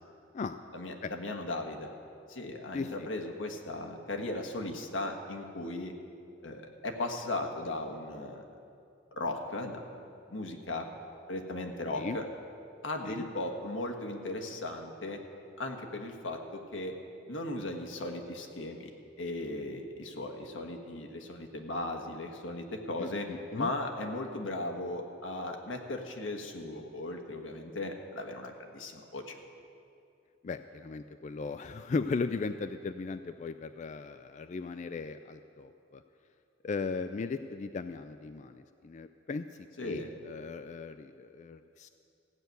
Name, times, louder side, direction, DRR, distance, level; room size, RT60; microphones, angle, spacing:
voice 1, 0.7-1.9 2.3-5.9 6.4-8.5 9.2-9.8 10.3-10.9 11.3-12.2 12.8-15.2 15.6-16.9 17.3-18.9 19.2-23.3 23.5-29.4 39.8-40.1, left 2 dB, 85° left, 3 dB, 1.4 m, -37 dB
voice 2, 2.7-3.1 12.0-12.2 13.1-13.3 23.0-23.7 30.4-36.0 36.6-39.5 39.8-41.9, left 4 dB, 40° left, 9 dB, 0.3 m, -37 dB
15.0 x 6.8 x 9.2 m, 2.6 s
head